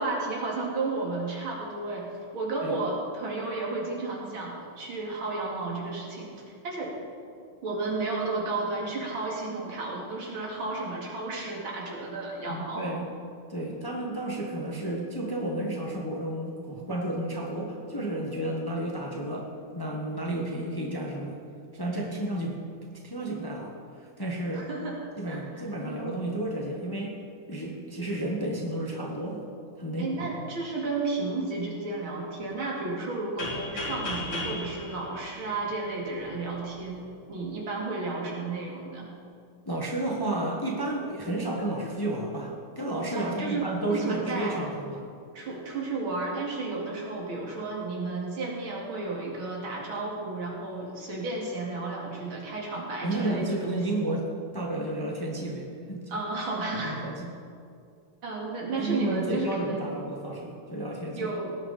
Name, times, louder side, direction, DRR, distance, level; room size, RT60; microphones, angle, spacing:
voice 1, 0.0-2.1 2.3-6.3 6.6-7.0 7.6-12.9 24.5-25.0 25.3-26.1 30.0-37.0 37.3-39.1 43.1-44.6 45.3-53.8 56.1-57.0 58.2-59.9 61.2-61.5, right 3 dB, 80° right, -2 dB, 3.0 m, -32 dB
voice 2, 12.5-13.1 13.5-19.5 19.7-21.4 21.7-22.6 23.0-24.7 25.2-27.2 27.5-29.4 29.8-30.1 39.7-45.0 53.0-54.2 54.5-56.0 56.8-57.3 58.8-61.3, right 1 dB, 15° left, -1 dB, 1.1 m, -32 dB
sound 1, 33.4-36.1, left 2 dB, 65° left, 3.6 m, -35 dB
18.0 x 9.7 x 4.2 m, 2.3 s
omnidirectional pair, 2.2 m